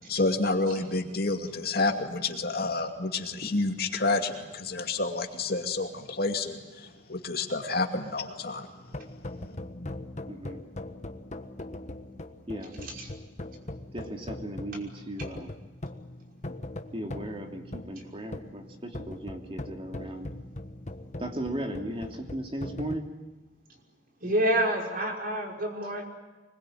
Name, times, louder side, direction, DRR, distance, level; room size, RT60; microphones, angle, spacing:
voice 1, 0.1-8.7, left 3 dB, 60° left, 4 dB, 2.5 m, -29 dB
sound 1, 8.9-23.0, left 1 dB, 40° left, 1.4 m, -41 dB
voice 2, 10.3-10.6 12.5-13.1 13.9-15.5 16.9-20.3 21.2-23.1, right 1 dB, 30° right, 3 dB, 2.9 m, -37 dB
voice 3, 24.2-26.0, right 1 dB, 55° right, 1 dB, 5.7 m, -28 dB
25.0 x 21.5 x 9.3 m, 1.2 s
head